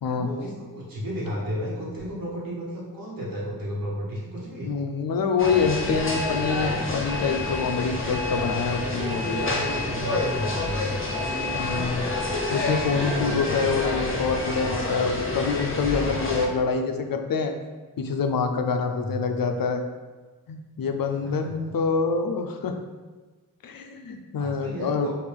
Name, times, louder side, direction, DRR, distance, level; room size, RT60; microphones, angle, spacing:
voice 1, 0.1-4.7 8.4-11.0 18.7-19.3 21.2-21.7 24.4-25.1, equal, 75° right, -6 dB, 1.3 m, -33 dB
voice 2, 4.6-9.5 11.5-17.5 18.0-19.8 20.5-22.8 23.6-25.1, left 5 dB, 75° left, 6 dB, 0.5 m, -26 dB
sound 1, 5.4-16.5, left 2 dB, 35° left, 0.7 m, -28 dB
5.1 x 2.5 x 3.5 m, 1.3 s
wide cardioid pair, 95°, 35 cm